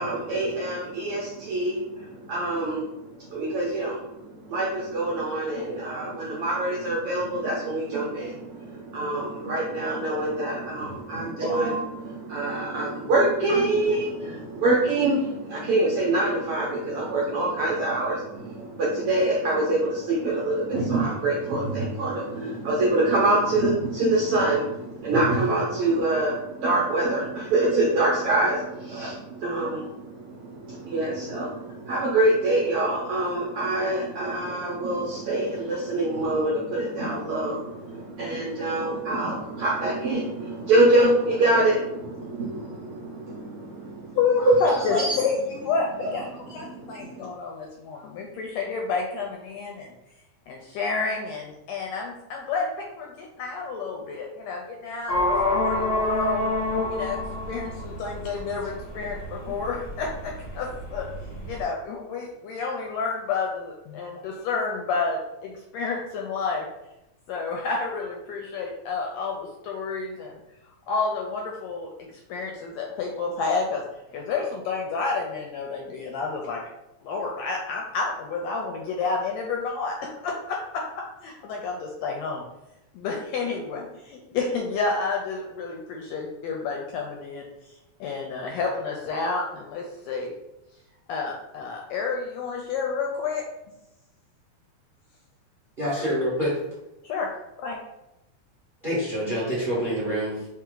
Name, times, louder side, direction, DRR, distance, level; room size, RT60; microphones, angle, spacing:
voice 1, 0.0-2.8 3.2-4.1 4.5-44.2 44.9-45.2 46.5-47.3, right 2 dB, 75° right, -4 dB, 1.3 m, -25 dB
voice 2, 44.1-46.3 46.5-49.9 50.5-55.1 55.5-56.5 56.9-57.2 57.5-61.0 61.4-66.7 67.3-70.3 70.9-73.8 74.1-76.6 77.0-80.0 80.2-80.8 81.2-82.4 82.9-87.5 88.0-90.3 91.1-93.4 96.0-96.1 97.0-97.3 97.6-97.8, left 4 dB, 80° left, 0 dB, 1.6 m, -30 dB
sound 1, 55.1-61.6, left 2 dB, 40° left, 1.1 m, -28 dB
voice 3, 95.8-96.6 98.8-100.5, equal, 40° right, -8 dB, 0.7 m, -26 dB
4.4 x 3.0 x 3.8 m, 0.90 s
omnidirectional pair, 3.5 m